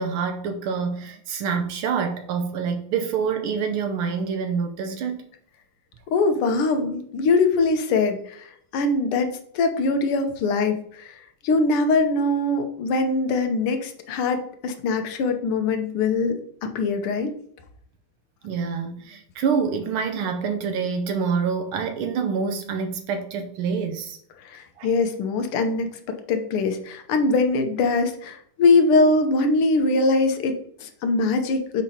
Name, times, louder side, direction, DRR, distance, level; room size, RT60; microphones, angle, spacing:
voice 1, 0.0-5.3 18.4-24.2 24.8-24.9, right 6 dB, 80° right, 1.5 m, -26 dB
voice 2, 6.1-17.3 24.4-31.8, left 3 dB, 90° left, 1.7 m, -22 dB
7.1 x 5.1 x 2.8 m
omnidirectional pair, 2.4 m